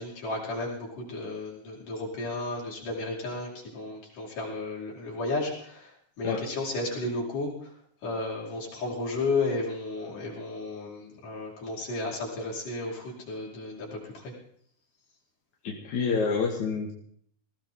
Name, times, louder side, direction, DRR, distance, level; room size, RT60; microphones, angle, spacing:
voice 1, 0.0-7.7 8.0-14.3, left 2 dB, 85° left, -4 dB, 6.6 m, -33 dB
voice 2, 15.6-16.9, left 5 dB, 65° left, -2 dB, 3.5 m, -28 dB
21.0 x 17.0 x 3.9 m, 0.63 s
omnidirectional pair, 3.6 m